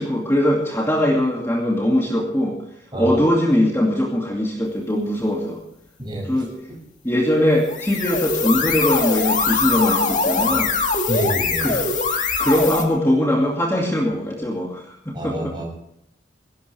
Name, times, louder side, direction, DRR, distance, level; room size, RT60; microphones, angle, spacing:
voice 1, 0.0-2.6 3.0-5.6 6.2-6.5 7.0-10.7 11.6-15.6, left 1 dB, 15° left, -2 dB, 2.4 m, -21 dB
sound 1, 7.6-12.8, left 4 dB, 40° left, 2.1 m, -22 dB
voice 2, 11.1-11.7 15.1-15.7, right 1 dB, 25° right, 0 dB, 6.6 m, -27 dB
21.0 x 17.5 x 3.4 m, 0.74 s
head